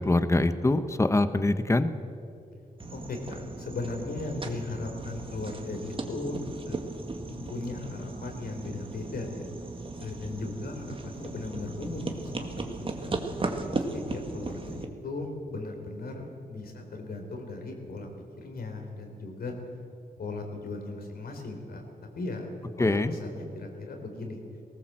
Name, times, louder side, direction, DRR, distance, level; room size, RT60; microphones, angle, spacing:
voice 1, 0.0-1.9 22.8-23.1, left 2 dB, 20° left, 11 dB, 1.0 m, -24 dB
sound 1, 2.8-14.9, right 3 dB, 35° right, 1.8 m, -37 dB
voice 2, 2.9-6.9 7.3-9.5 10.0-13.2 13.7-18.1 18.4-19.5 20.2-21.8 22.2-22.5 22.8-24.4, left 2 dB, 75° left, 3 dB, 4.0 m, -37 dB
19.0 x 18.5 x 7.6 m, 2.6 s
wide cardioid pair, 100°, 16 cm